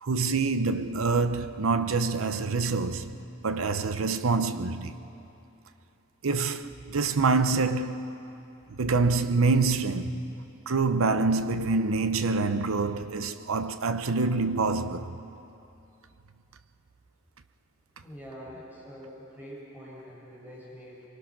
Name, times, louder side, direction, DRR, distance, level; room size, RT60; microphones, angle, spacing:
voice 1, 0.0-3.2 3.4-5.0 6.2-8.1 8.7-10.3 10.7-15.2, right 4 dB, 85° right, 0.7 m, -26 dB
voice 2, 18.0-21.0, equal, 10° right, 6.3 m, -45 dB
24.5 x 23.5 x 6.1 m
head